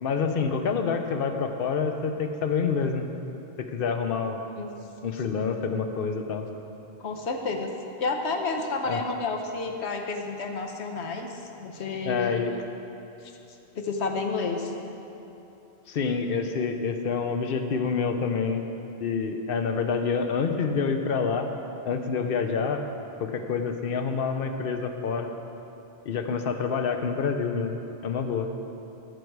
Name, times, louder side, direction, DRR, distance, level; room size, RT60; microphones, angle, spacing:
voice 1, 0.0-3.1 3.6-4.4 5.0-6.5 8.8-9.0 12.0-12.5 15.9-18.7 19.0-21.5 21.8-22.8 23.2-25.3 26.1-28.5, left 5 dB, 60° left, 6 dB, 0.9 m, -27 dB
voice 2, 7.0-7.7 8.0-12.3 13.7-14.7, left 3 dB, 80° left, 4 dB, 1.1 m, -30 dB
14.0 x 6.2 x 4.7 m, 2.9 s
omnidirectional pair, 1.1 m